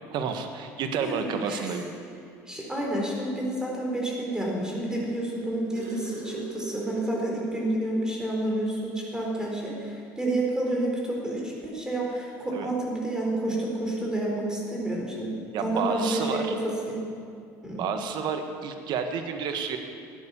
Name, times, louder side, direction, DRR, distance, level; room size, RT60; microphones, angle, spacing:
voice 1, 0.1-1.9 12.5-12.7 15.5-16.5 17.8-19.8, right 6 dB, 60° right, 6 dB, 1.5 m, -30 dB
voice 2, 1.0-1.7 2.5-16.4 16.9-17.0 17.6-17.9, right 1 dB, 10° right, -2 dB, 4.3 m, -29 dB
sound 1, 5.2-8.1 8.5-8.6 9.0-9.2 10.3-10.4, right 3 dB, 90° right, 3.1 m, -40 dB
14.0 x 9.6 x 7.1 m, 2.3 s
supercardioid pair, 90°, 9 cm